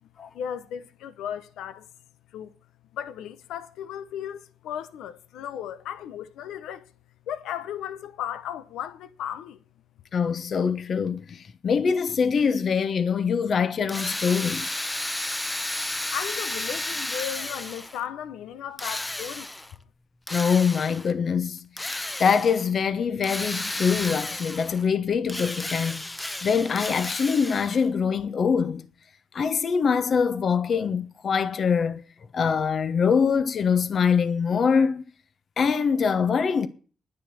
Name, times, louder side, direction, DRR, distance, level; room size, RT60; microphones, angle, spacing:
voice 1, 0.3-1.8 2.3-2.5 2.9-6.9 7.3-9.6 16.1-19.5, left 10 dB, 85° left, 0.9 m, -35 dB
voice 2, 10.1-14.7 20.3-26.1 26.4-28.9 29.3-32.0 32.3-35.0 35.6-36.7, left 6 dB, 50° left, 1.1 m, -24 dB
Drill, 13.9-18.0 18.8-19.7 20.3-21.1 21.8-22.7 23.2-24.9 25.3-27.9, left 1 dB, 15° left, 0.8 m, -33 dB
10.0 x 10.0 x 6.4 m
cardioid pair, 90°, 0 cm